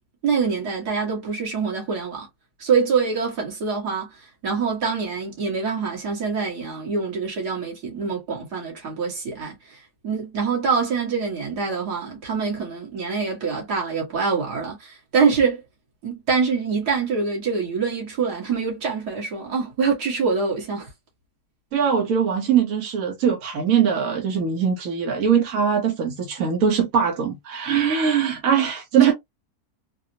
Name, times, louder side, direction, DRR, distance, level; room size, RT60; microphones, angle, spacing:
voice 1, 0.2-2.3 2.6-15.6 16.0-20.9 29.0-29.1, right 5 dB, 80° right, 2.1 m, -25 dB
voice 2, 21.7-29.1, right 7 dB, 65° right, 1.3 m, -21 dB
4.0 x 2.0 x 2.7 m
omnidirectional pair, 1.7 m